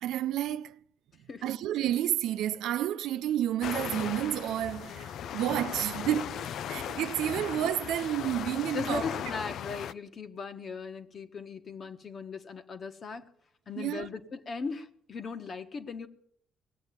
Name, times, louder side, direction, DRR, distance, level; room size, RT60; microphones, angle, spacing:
voice 1, 0.0-0.8 1.4-9.1 13.8-14.1, right 12 dB, 85° right, 0.6 m, -30 dB
sound 1, 3.6-9.9, left 9 dB, 75° left, 0.5 m, -37 dB
voice 2, 8.7-13.3 13.7-16.1, left 4 dB, 50° left, 1.6 m, -38 dB
19.5 x 8.1 x 8.9 m
cardioid pair, 90°, 0 cm